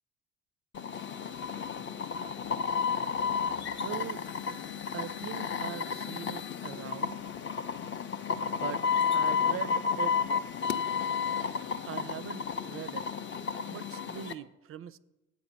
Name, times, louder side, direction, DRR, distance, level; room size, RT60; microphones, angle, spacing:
sound 1, 0.7-14.3, left 6 dB, 30° left, 0.5 m, -32 dB
voice 1, 3.8-4.3 4.9-7.2 8.5-10.2 11.9-13.1 13.7-15.0, right 10 dB, 35° right, 0.4 m, -41 dB
8.2 x 4.9 x 6.7 m
hypercardioid pair, 60°, 39 cm